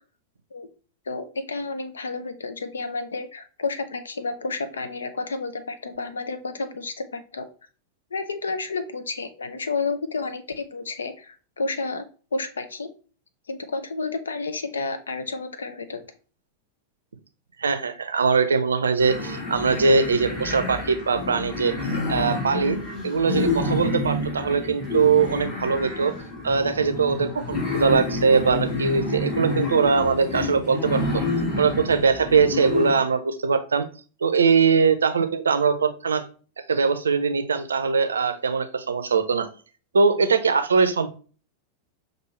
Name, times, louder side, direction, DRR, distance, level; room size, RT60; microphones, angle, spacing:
voice 1, 1.1-7.5 8.1-12.1 12.3-12.9 13.5-16.0, left 3 dB, 70° left, 9 dB, 0.6 m, -31 dB
voice 2, 17.6-21.7 22.1-22.8 23.0-26.1 26.4-31.2 31.6-33.8 34.2-36.3 36.7-39.5 39.9-41.1, right 5 dB, 70° right, 9 dB, 0.5 m, -21 dB
sound 1, 19.0-33.0, left 2 dB, 35° left, 2.3 m, -29 dB
6.1 x 2.6 x 3.1 m, 0.38 s
figure-of-eight pair, 90°, 0 cm